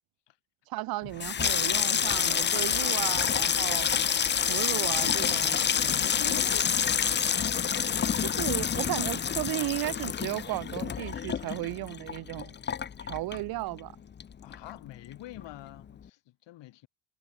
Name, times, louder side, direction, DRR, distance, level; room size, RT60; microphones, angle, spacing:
voice 1, 0.7-3.9 4.5-5.7 6.2-6.4 8.2-12.5 13.0-13.9, right 19 dB, 50° right, 0.6 m, -34 dB
Water tap faucet / Sink (filling or washing), 1.0-13.9 14.2-14.9 15.1-15.4, left 8 dB, 25° left, 0.6 m, -28 dB
voice 2, 5.8-7.6 14.4-16.9, left 16 dB, 60° left, 3.0 m, -45 dB
hypercardioid pair, 70°, 47 cm